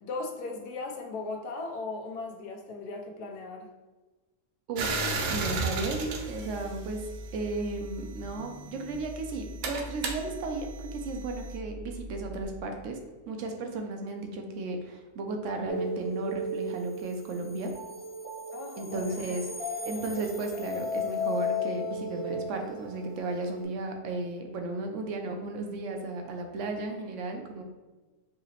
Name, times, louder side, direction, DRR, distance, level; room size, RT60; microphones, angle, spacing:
voice 1, 0.0-3.7 18.5-19.2 19.9-20.2, left 3 dB, 85° left, 2 dB, 1.2 m, -38 dB
voice 2, 4.7-5.0 5.3-13.0 13.3-17.7 18.8-27.6, right 2 dB, 65° right, 4 dB, 0.8 m, -34 dB
sound 1, 4.8-7.4 8.3-11.6, right 3 dB, 85° right, 1.1 m, -34 dB
sound 2, 5.3-12.4, equal, 55° left, 1.1 m, -43 dB
sound 3, 15.7-23.6, left 2 dB, 15° right, 0.6 m, -35 dB
4.8 x 2.8 x 2.9 m, 1.2 s
omnidirectional pair, 1.6 m